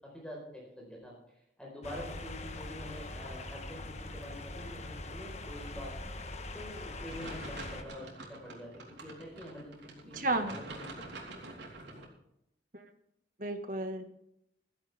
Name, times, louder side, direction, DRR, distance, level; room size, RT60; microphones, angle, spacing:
voice 1, 0.1-1.1 1.6-6.1 6.5-11.4 11.9-12.0, left 1 dB, 5° left, -2 dB, 4.5 m, -46 dB
sound 1, 1.8-7.8, left 2 dB, 35° left, 1.3 m, -42 dB
sound 2, 7.1-12.1, right 2 dB, 75° right, 3.8 m, -46 dB
voice 2, 10.2-10.6 13.4-14.0, right 2 dB, 45° right, 6 dB, 1.7 m, -32 dB
15.5 x 14.0 x 3.5 m, 0.78 s
head